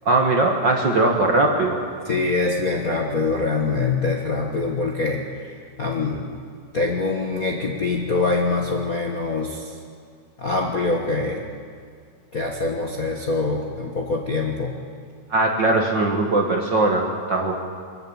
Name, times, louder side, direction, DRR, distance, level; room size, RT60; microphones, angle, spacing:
voice 1, 0.0-1.8 15.3-17.6, right 2 dB, 45° right, 1 dB, 1.7 m, -20 dB
voice 2, 2.0-5.5 5.8-6.3 6.7-9.7 10.4-11.4 12.3-14.7, left 3 dB, 40° left, -1 dB, 1.4 m, -24 dB
24.5 x 13.5 x 8.8 m, 2.1 s
omnidirectional pair, 3.6 m